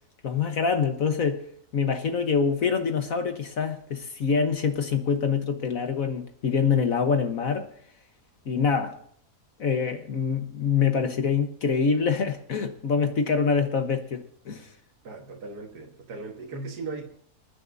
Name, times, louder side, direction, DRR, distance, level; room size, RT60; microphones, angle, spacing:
voice 1, 0.2-1.4 1.7-7.7 8.5-9.0 9.6-14.7, left 6 dB, 60° left, 1.5 m, -25 dB
voice 2, 15.0-17.0, right 3 dB, 75° right, 2.1 m, -37 dB
27.0 x 10.0 x 2.7 m
omnidirectional pair, 1.7 m